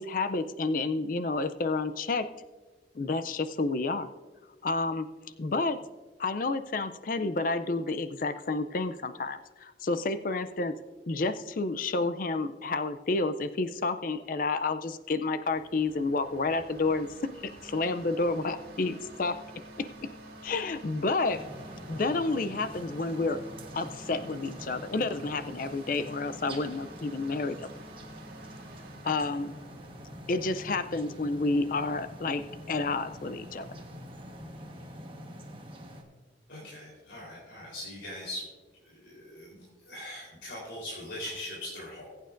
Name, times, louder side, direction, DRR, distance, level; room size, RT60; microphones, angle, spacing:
voice 1, 0.0-2.3 2.9-4.1 4.6-5.1 5.4-5.8 6.2-10.8 11.1-17.1 17.4-19.4 19.8-19.9 20.4-21.4 21.9-23.4 23.7-27.7 29.0-29.6 30.3-32.4 32.7-33.7, left 3 dB, 45° left, 11 dB, 0.4 m, -30 dB
sound 1, 15.5-34.5, right 1 dB, 60° right, 2.1 m, -49 dB
sound 2, 21.3-36.0, equal, 30° right, 1.3 m, -46 dB
voice 2, 36.5-38.4 38.8-42.1, left 1 dB, 80° left, -5 dB, 3.8 m, -41 dB
20.0 x 9.0 x 2.6 m, 1.3 s
head